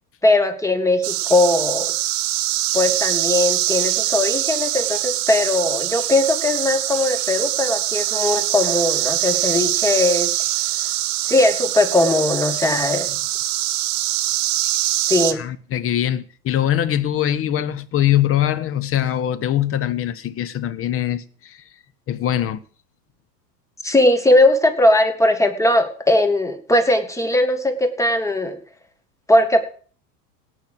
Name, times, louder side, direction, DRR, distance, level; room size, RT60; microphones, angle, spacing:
voice 1, 0.2-1.9 2.7-10.5 11.3-13.1 15.1-15.4 23.8-28.6 29.3-29.6, left 2 dB, 5° left, 2.0 m, -19 dB
sound 1, 1.0-15.3, right 15 dB, 50° right, 1.3 m, -23 dB
voice 2, 15.4-21.6 22.1-22.6, left 11 dB, 25° left, 1.1 m, -22 dB
17.5 x 6.4 x 7.8 m
figure-of-eight pair, 90°, 49 cm